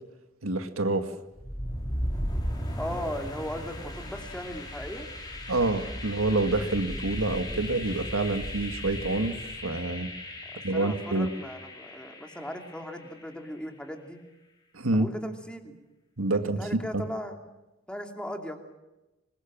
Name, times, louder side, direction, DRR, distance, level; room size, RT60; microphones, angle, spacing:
voice 1, 0.4-1.1 5.5-10.1 10.6-11.3 14.7-15.1 16.2-17.0, right 2 dB, 85° right, 7 dB, 1.9 m, -27 dB
sound 1, 1.3-13.2, left 1 dB, 20° left, 4.2 m, -36 dB
voice 2, 2.8-5.1 10.4-14.2 14.9-15.8 16.3-17.4 17.9-18.6, equal, 5° left, 4 dB, 2.7 m, -38 dB
25.5 x 21.0 x 7.5 m, 1.0 s
head